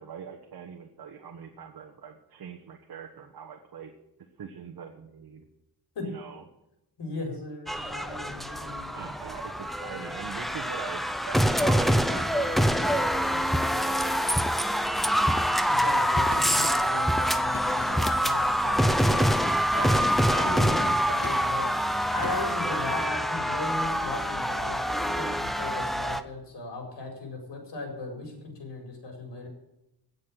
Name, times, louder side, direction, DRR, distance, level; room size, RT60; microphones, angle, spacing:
voice 1, 0.0-3.9 4.4-5.5 6.0-6.4 8.0-8.2 8.9-14.9 15.2-15.3, right 7 dB, 60° right, 3 dB, 1.4 m, -43 dB
voice 2, 7.0-9.0 15.6-19.3 19.7-21.7 22.1-29.5, left 3 dB, 80° left, 2 dB, 4.7 m, -37 dB
sound 1, 7.7-26.2, equal, ahead, 0.5 m, -25 dB
Gunshot gunfire, 16.3-17.0 17.5-18.3 19.0-19.5 20.0-20.5 21.2-21.7 22.2-22.6, left 5 dB, 35° left, 1.0 m, -40 dB
17.0 x 6.7 x 7.5 m, 0.92 s
wide cardioid pair, 170°, 41 cm